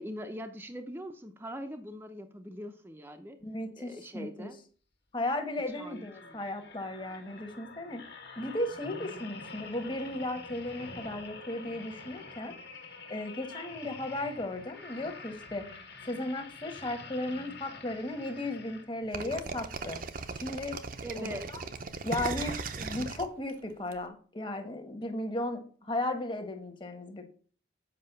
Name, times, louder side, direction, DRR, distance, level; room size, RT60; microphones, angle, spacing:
voice 1, 0.0-3.4 3.8-4.6 5.8-6.5 21.0-21.5, equal, 10° right, 6 dB, 0.7 m, -42 dB
voice 2, 3.4-4.5 5.1-12.5 13.1-15.6 16.0-20.0 20.3-20.8 21.2-21.6 22.0-27.3, left 1 dB, 25° left, 6 dB, 1.3 m, -35 dB
sound 1, 5.6-19.2 19.8-20.0, left 4 dB, 60° left, 1.7 m, -47 dB
sound 2, 19.1-23.9, right 4 dB, 45° right, 0.7 m, -37 dB
7.7 x 5.4 x 6.7 m, 0.42 s
head